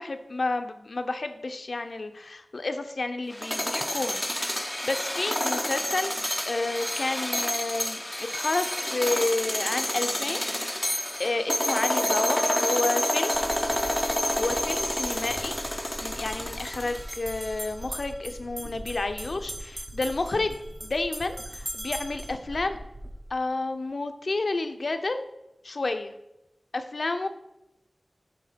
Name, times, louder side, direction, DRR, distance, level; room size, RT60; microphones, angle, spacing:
voice 1, 0.0-4.2 4.5-10.5 11.2-13.3 14.3-22.8 23.3-25.2 25.6-26.1 26.7-27.3, left 2 dB, 70° left, 8 dB, 0.6 m, -30 dB
sound 1, 3.3-17.5, left 1 dB, 10° left, 0.4 m, -29 dB
sound 2, 13.3-23.3, equal, 65° right, 1.3 m, -43 dB
sound 3, 16.3-22.4, right 1 dB, 50° right, 1.9 m, -41 dB
7.9 x 3.6 x 5.1 m, 0.88 s
wide cardioid pair, 55°, 0 cm